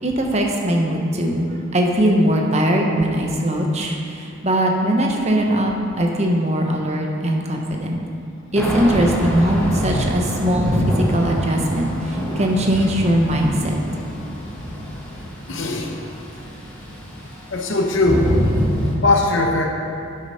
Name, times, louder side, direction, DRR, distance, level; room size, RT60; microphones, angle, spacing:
voice 1, 0.0-8.0 8.5-13.8, equal, 30° right, 1 dB, 1.0 m, -20 dB
Thunder / Rain, 8.6-18.9, equal, 5° left, 1.5 m, -25 dB
voice 2, 15.5-15.9 17.5-18.3 19.0-19.7, left 2 dB, 60° left, 1 dB, 0.9 m, -19 dB
8.8 x 7.9 x 5.6 m, 2.7 s
head